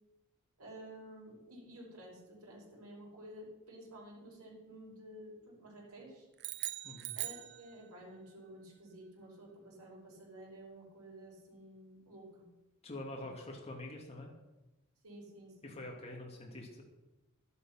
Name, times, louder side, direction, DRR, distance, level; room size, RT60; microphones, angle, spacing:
voice 1, 0.6-6.3 7.1-12.5 15.0-15.8, right 1 dB, 80° right, -3 dB, 5.4 m, -52 dB
sound 1, 6.4-8.2, right 15 dB, 50° right, 0.6 m, -41 dB
voice 2, 12.8-14.3 15.6-16.8, left 1 dB, 30° left, -1 dB, 2.7 m, -45 dB
12.0 x 11.0 x 5.9 m, 1.0 s
head